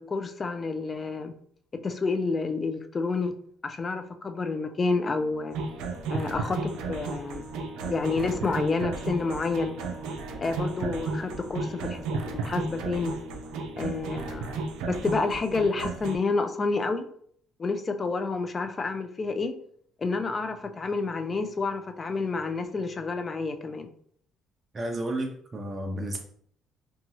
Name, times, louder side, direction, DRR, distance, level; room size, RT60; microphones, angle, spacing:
voice 1, 0.0-1.3 1.8-3.3 3.6-5.6 6.1-7.4 7.8-9.7 10.4-13.1 13.8-17.1 17.6-19.5 20.0-23.9, left 4 dB, 30° left, 8 dB, 0.3 m, -29 dB
sound 1, 4.9-16.2, equal, 10° left, 1.0 m, -45 dB
sound 2, 5.5-16.2, right 4 dB, 85° right, 0.4 m, -33 dB
voice 2, 24.7-26.2, right 1 dB, 30° right, 2 dB, 0.5 m, -32 dB
2.8 x 2.3 x 2.7 m, 0.63 s
cardioid pair, 100°, 0 cm